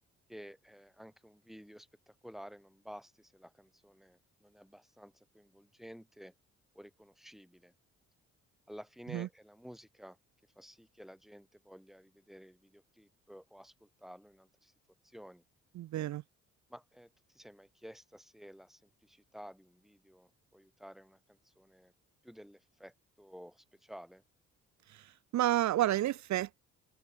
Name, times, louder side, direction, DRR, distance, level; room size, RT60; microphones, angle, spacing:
voice 1, 0.3-6.3 6.7-7.7 8.7-10.2 10.6-14.7 15.0-15.4 16.7-21.9 22.2-24.2, equal, ahead, 5.7 m, -53 dB
voice 2, 15.7-16.2 24.9-26.7, right 14 dB, 65° right, 0.7 m, -31 dB
cardioid pair, 90°, 30 cm